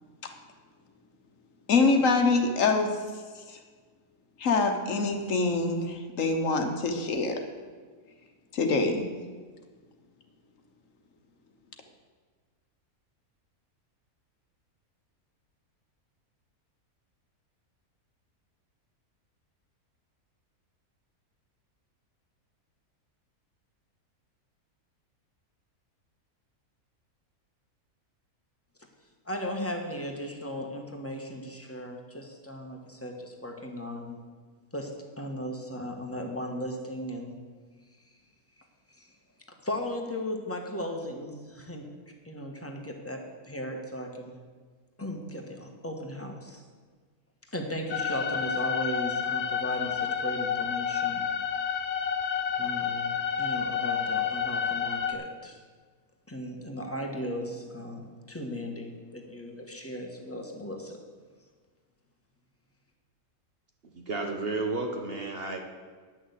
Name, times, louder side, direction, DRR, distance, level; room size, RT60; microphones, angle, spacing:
voice 1, 1.7-3.0 3.5-3.6 4.4-7.4 8.5-9.1, left 3 dB, 60° left, 5 dB, 1.3 m, -25 dB
voice 2, 29.2-34.2 34.7-34.9 35.2-37.4 38.9-39.1 39.6-41.9 42.2-44.3 45.0-46.6 47.5-51.2 52.6-53.1 53.4-55.6 56.3-61.0, equal, 10° left, 2 dB, 1.2 m, -36 dB
sound 1, 47.9-55.1, left 7 dB, 85° left, 1.5 m, -29 dB
voice 3, 63.9-65.6, right 3 dB, 45° right, 3 dB, 1.1 m, -32 dB
10.0 x 6.3 x 8.0 m, 1.5 s
omnidirectional pair, 1.6 m